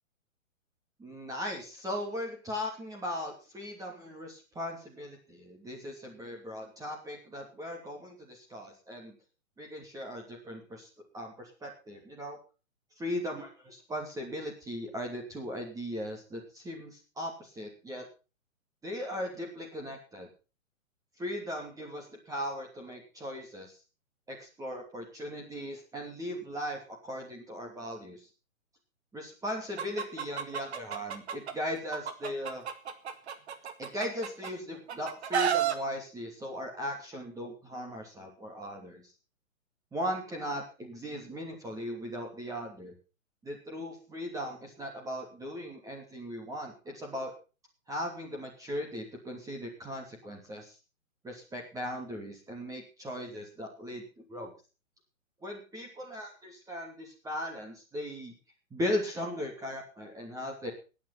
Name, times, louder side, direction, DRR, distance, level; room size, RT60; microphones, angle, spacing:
voice 1, 1.0-9.2 9.6-10.9 11.1-12.4 13.0-18.0 18.8-20.3 21.2-23.8 24.3-28.3 29.1-32.6 33.8-39.0 39.9-42.9 43.4-47.3 47.9-50.7 51.2-54.0 54.3-54.5 55.4-58.3 58.7-60.7, equal, 10° right, 1 dB, 2.9 m, -38 dB
Chicken rooster, 29.8-31.5 31.9-34.5 34.9-35.8, right 8 dB, 50° right, 2.2 m, -31 dB
18.0 x 8.9 x 5.6 m, 0.34 s
figure-of-eight pair, 130°, 40 cm